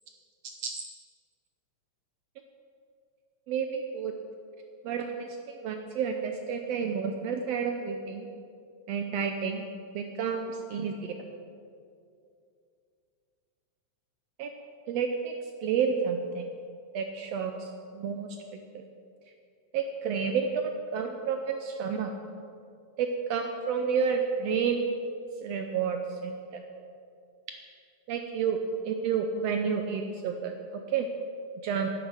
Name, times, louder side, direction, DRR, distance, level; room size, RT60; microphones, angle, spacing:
voice 1, 3.5-4.1 4.8-8.2 8.9-11.2 14.4-14.5 14.9-15.3 15.6-16.4 16.9-17.7 17.9-18.8 19.7-22.1 23.0-24.8 25.4-26.6 28.1-28.6 28.8-30.5 30.9-31.1 31.6-31.9, right 6 dB, 75° right, 4 dB, 1.5 m, -30 dB
10.0 x 9.3 x 6.3 m, 2.4 s
omnidirectional pair, 3.4 m